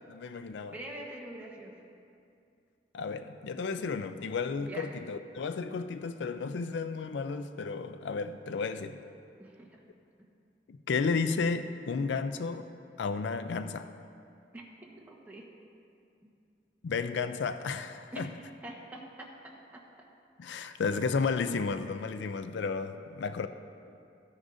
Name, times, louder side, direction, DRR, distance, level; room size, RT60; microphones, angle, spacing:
voice 1, 0.1-0.8 2.9-9.0 10.7-12.7 13.0-13.9 16.8-18.3 20.4-23.5, left 4 dB, 80° left, 10 dB, 0.4 m, -33 dB
voice 2, 0.7-1.7 4.6-5.0 9.4-9.7 10.2-10.3 14.5-15.5 16.2-16.3 18.1-18.2 18.6-19.8, right 1 dB, 10° right, -3 dB, 1.2 m, -45 dB
14.0 x 9.6 x 2.6 m, 2.5 s
head